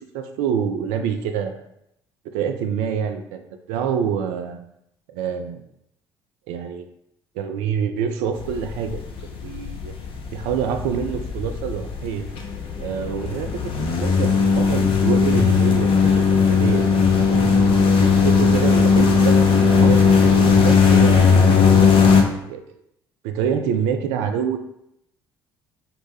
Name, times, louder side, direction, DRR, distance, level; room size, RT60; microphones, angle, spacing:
voice 1, 0.0-1.6 2.3-3.4 3.7-4.6 5.1-5.6 6.5-6.9 7.4-9.0 9.4-9.9 10.3-12.3 12.8-13.6 14.0-17.0 17.3-17.4 18.0-21.3 21.8-22.6 23.2-24.6, right 7 dB, 65° right, 6 dB, 0.4 m, -26 dB
sound 1, 8.4-22.2, left 5 dB, 45° left, 0.6 m, -17 dB
4.2 x 2.1 x 3.2 m, 0.78 s
figure-of-eight pair, 50°, 12 cm